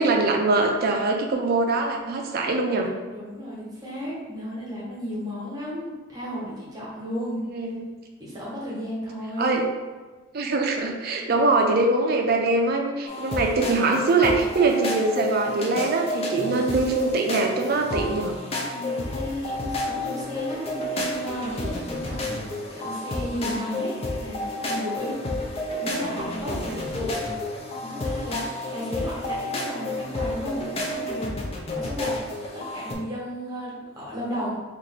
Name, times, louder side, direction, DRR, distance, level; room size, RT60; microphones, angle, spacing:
voice 1, 0.0-2.9 7.4-7.9 9.4-9.6 10.3-18.3 26.5-26.8, right 3 dB, 45° right, 2 dB, 0.5 m, -23 dB
voice 2, 3.1-7.4 8.2-9.6 18.7-25.2 25.8-27.2 27.8-31.3 31.7-32.2 32.5-34.6, equal, 20° right, -6 dB, 1.0 m, -34 dB
sound 1, 13.1-32.9, left 2 dB, 30° left, 0.5 m, -31 dB
3.0 x 2.5 x 4.1 m, 1.3 s
head